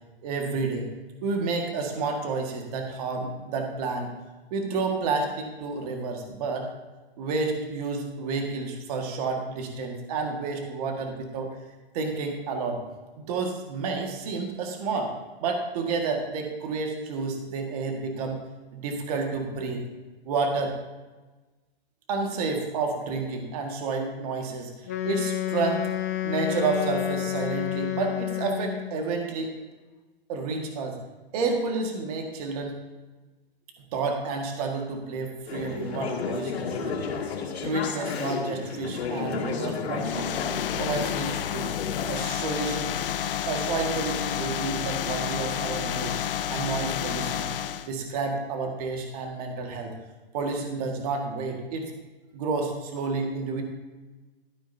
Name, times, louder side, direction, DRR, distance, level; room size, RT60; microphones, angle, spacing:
voice 1, 0.2-0.9 1.2-4.1 4.5-6.7 7.2-11.5 11.9-12.8 13.2-15.1 15.4-18.4 18.7-19.8 20.2-20.7 22.1-25.8 26.2-29.5 30.3-31.0 31.3-32.8 33.9-37.0 37.6-40.3 40.8-41.7 42.1-42.9 43.5-46.2 46.5-47.5 47.8-49.9 50.3-51.9 52.3-53.6, right 4 dB, 40° right, 3 dB, 1.8 m, -30 dB
Wind instrument woodwind instrument, 24.8-29.0, left 13 dB, 15° left, 0.4 m, -30 dB
Conversation / Chatter, 35.5-42.2, left 5 dB, 85° left, 2.5 m, -32 dB
sound 1, 40.0-47.9, left 10 dB, 60° left, 0.7 m, -30 dB
13.5 x 11.5 x 2.7 m, 1.2 s
hypercardioid pair, 160°, 31 cm